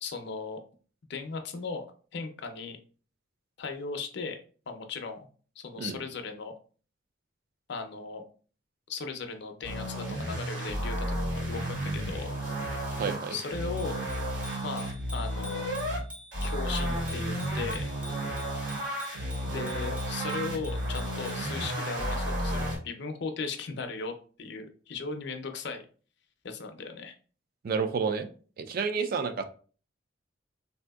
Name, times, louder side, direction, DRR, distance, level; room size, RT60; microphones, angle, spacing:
voice 1, 0.0-0.6 1.1-1.9 2.1-2.8 3.6-4.4 4.7-5.2 5.6-6.5 7.7-8.2 8.9-12.3 13.3-14.0 14.6-15.7 16.4-17.8 19.5-25.8 26.4-27.1, left 4 dB, 65° left, 6 dB, 0.5 m, -37 dB
sound 1, 9.6-16.0 16.3-22.8, equal, 80° right, 1.6 m, -32 dB
voice 2, 13.0-13.4 27.6-28.3 28.6-29.4, right 5 dB, 50° right, 8 dB, 0.4 m, -30 dB
Bicycle bell, 13.4-21.5, left 1 dB, 5° right, 0.6 m, -48 dB
3.3 x 2.7 x 2.3 m, 0.40 s
head